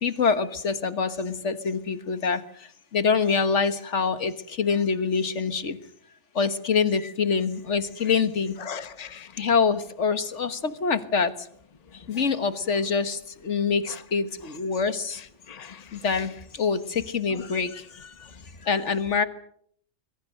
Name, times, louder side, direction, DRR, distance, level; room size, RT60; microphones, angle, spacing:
voice 1, 0.0-2.4 2.9-5.8 6.4-8.6 9.4-11.3 12.1-15.2 15.9-18.1 18.7-19.2, left 5 dB, 75° left, 1.7 m, -25 dB
voice 2, 8.6-9.5 13.9-14.0 15.5-16.0 17.3-17.4, left 6 dB, 35° left, 1.2 m, -39 dB
25.5 x 22.5 x 6.6 m
omnidirectional pair, 1.2 m